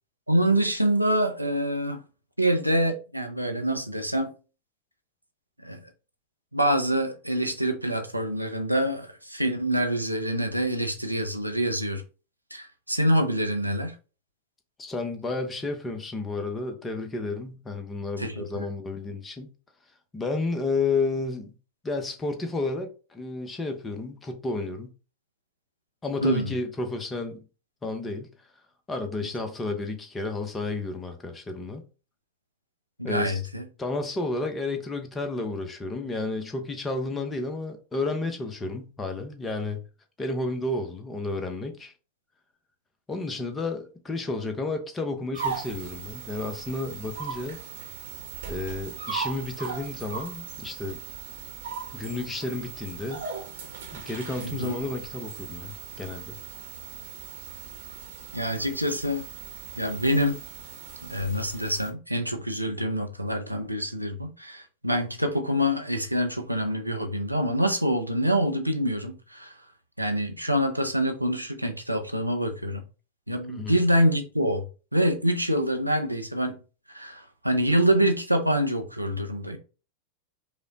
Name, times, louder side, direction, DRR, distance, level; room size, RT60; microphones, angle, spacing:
voice 1, 0.3-2.0 2.4-4.4 5.6-5.9 6.5-12.0 12.5-13.9 18.2-18.7 26.2-26.5 33.0-33.7 54.4-54.8 58.3-59.2 59.8-60.4 61.0-69.6 70.0-72.9 73.3-74.6 74.9-76.6 76.9-79.6, equal, 90° right, 0.5 m, -26 dB
voice 2, 14.8-19.5 20.1-21.5 21.8-24.9 26.0-27.5 27.8-28.3 28.9-31.8 33.0-33.4 33.8-39.8 40.2-41.9 43.1-47.6 48.5-51.0 51.9-53.3 53.9-56.4 73.5-73.8, left 3 dB, 15° left, 0.7 m, -31 dB
sound 1, 45.3-61.9, right 7 dB, 60° right, 0.9 m, -38 dB
4.8 x 2.1 x 2.7 m
figure-of-eight pair, 90°, 0 cm